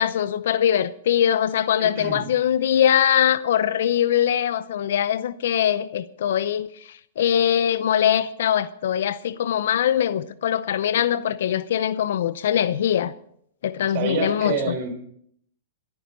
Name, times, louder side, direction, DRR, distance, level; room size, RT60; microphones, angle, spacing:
voice 1, 0.0-6.7 7.2-13.1 13.6-14.8, left 10 dB, 70° left, 0.7 m, -22 dB
voice 2, 1.8-2.3 13.9-14.9, right 5 dB, 50° right, 4.7 m, -27 dB
22.5 x 9.7 x 4.1 m
hypercardioid pair, 125°, 0 cm